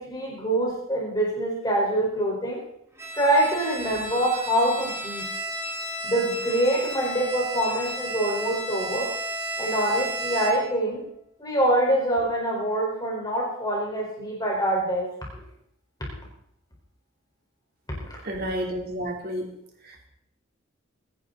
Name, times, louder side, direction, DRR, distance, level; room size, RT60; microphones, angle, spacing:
voice 1, 0.0-2.6 3.1-5.3 6.0-9.1 9.6-11.0 11.4-15.1 18.0-18.1, right 1 dB, 20° left, -2 dB, 4.6 m, -25 dB
Bowed string instrument, 3.0-10.8, right 1 dB, 15° right, 2.8 m, -33 dB
voice 2, 18.2-19.5 19.8-20.1, equal, 50° right, 1 dB, 3.5 m, -31 dB
24.0 x 10.5 x 4.1 m, 0.73 s
head